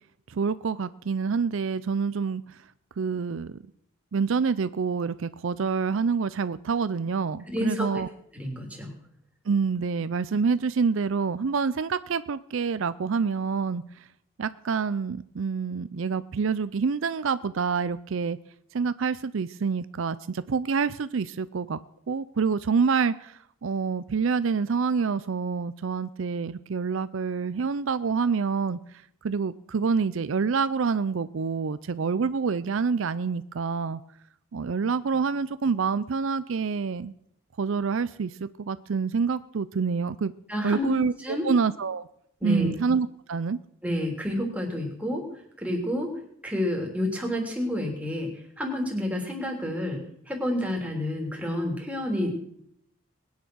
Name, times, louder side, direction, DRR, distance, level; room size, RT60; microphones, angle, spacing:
voice 1, 0.3-2.6 3.0-3.6 4.1-8.1 9.5-14.1 14.4-18.4 18.7-21.8 22.1-34.0 34.5-37.1 37.6-40.3 40.6-42.1 42.4-43.6, right 5 dB, 65° right, 15 dB, 0.5 m, -27 dB
voice 2, 7.5-7.9 8.3-8.9 40.5-40.9 41.2-41.5 42.4-42.7 43.8-45.3 45.6-46.1 46.4-48.3 48.6-52.3, left 1 dB, 5° right, 0 dB, 3.3 m, -29 dB
20.5 x 9.6 x 6.3 m, 0.73 s
head